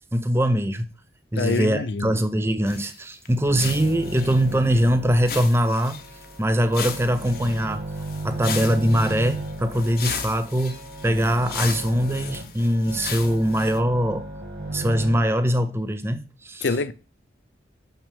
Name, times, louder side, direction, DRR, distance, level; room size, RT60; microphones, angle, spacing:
voice 1, 0.1-0.9 1.3-6.0 6.4-7.9 8.2-14.2 14.7-16.7, equal, 15° right, 0.5 m, -22 dB
voice 2, 1.4-2.1 16.6-16.9, left 3 dB, 75° left, 0.5 m, -25 dB
sound 1, 2.7-3.0 3.3-3.4 3.6-4.9 5.3-6.4 6.7-13.8, left 7 dB, 55° left, 0.9 m, -36 dB
sound 2, 3.4-5.5 5.8-15.2, right 1 dB, 55° right, 1.6 m, -35 dB
6.8 x 5.6 x 3.5 m
head